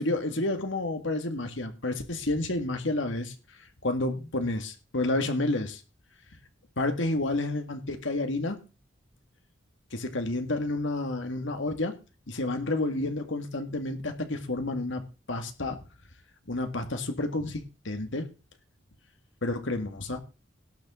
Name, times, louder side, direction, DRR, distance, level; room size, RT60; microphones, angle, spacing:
voice 1, 0.0-3.6 3.8-5.8 6.8-8.6 9.9-11.9 12.3-15.8 16.5-18.3 19.4-20.2, left 2 dB, 70° left, 6 dB, 2.0 m, -30 dB
18.5 x 7.0 x 3.8 m, 0.31 s
head